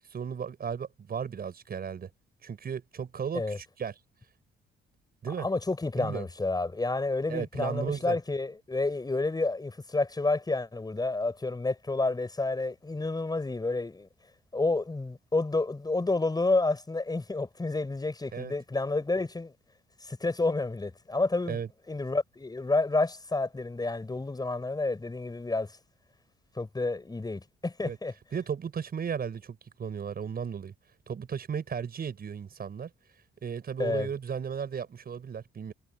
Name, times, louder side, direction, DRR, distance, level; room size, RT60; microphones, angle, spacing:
voice 1, 0.0-2.1 2.4-3.9 5.2-5.5 6.0-6.2 7.3-8.2 18.3-18.5 21.5-21.7 27.8-28.0 28.3-30.7 31.1-32.9 33.4-35.7, right 7 dB, 50° right, 6.9 m, -35 dB
voice 2, 5.4-14.1 14.5-19.5 20.0-21.6 21.9-25.7 26.6-28.1 33.8-34.1, left 3 dB, 20° left, 6.5 m, -29 dB
cardioid pair, 90°, 20 cm